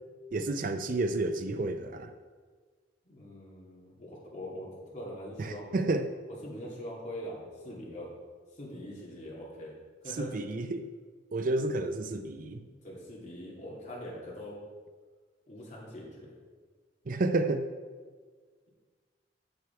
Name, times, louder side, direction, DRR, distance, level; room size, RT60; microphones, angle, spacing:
voice 1, 0.3-2.1 5.4-6.1 10.2-10.9 11.3-12.7 17.1-17.7, right 2 dB, 50° right, 9 dB, 0.5 m, -30 dB
voice 2, 3.0-5.8 6.4-8.1 8.6-9.7 10.0-10.3 12.5-14.6 15.5-16.3, equal, 45° left, -4 dB, 2.8 m, -43 dB
8.3 x 7.9 x 4.7 m, 1.5 s
head